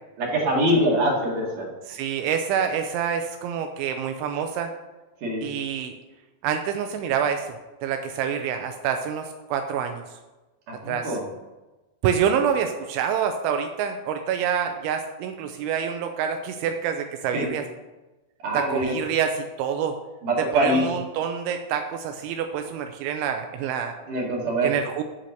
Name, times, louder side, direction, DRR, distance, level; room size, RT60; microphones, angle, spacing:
voice 1, 0.2-1.7 5.2-5.4 10.8-11.2 17.3-17.5 18.4-18.9 20.2-20.8 24.1-24.7, right 1 dB, 50° right, -3 dB, 2.9 m, -23 dB
voice 2, 1.9-4.7 5.4-5.9 6.4-10.2 10.9-11.1 12.0-17.6 18.5-20.0 20.5-23.9 24.6-25.0, right 8 dB, 90° right, 6 dB, 2.7 m, -27 dB
11.0 x 4.2 x 6.6 m, 1.1 s
omnidirectional pair, 5.9 m